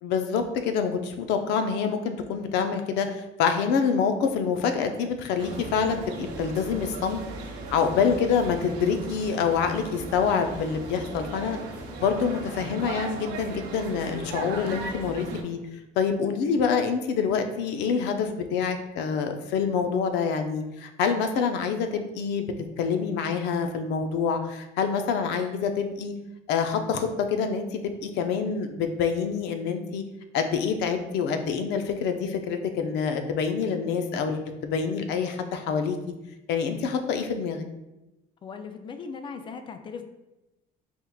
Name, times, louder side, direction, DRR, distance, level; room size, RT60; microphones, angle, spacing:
voice 1, 0.0-7.2 7.7-11.6 12.0-15.6 16.0-22.5 22.8-26.1 26.5-30.0 30.3-36.0 36.5-37.6, left 6 dB, 80° left, 7 dB, 0.5 m, -26 dB
sound 1, 5.4-15.4, right 2 dB, 75° right, 0.8 m, -37 dB
voice 2, 38.4-40.0, left 5 dB, 30° left, 8 dB, 0.4 m, -38 dB
4.4 x 3.5 x 2.3 m, 0.98 s
cardioid pair, 135°, 18 cm